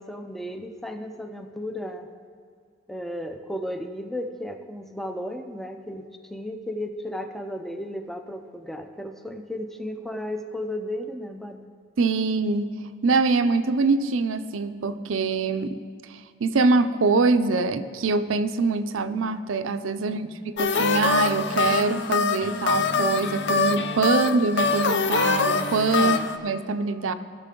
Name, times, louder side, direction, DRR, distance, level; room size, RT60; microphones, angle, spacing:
voice 1, 0.0-2.1 2.9-11.6 20.1-20.5 26.0-26.4, left 1 dB, ahead, 6 dB, 0.5 m, -34 dB
voice 2, 12.0-12.8 13.0-15.8 16.4-20.3 20.6-26.2 26.4-27.1, right 3 dB, 85° right, 11 dB, 0.5 m, -24 dB
sound 1, 20.6-26.4, left 4 dB, 60° left, 0.5 m, -24 dB
18.5 x 6.5 x 3.8 m, 2.2 s
head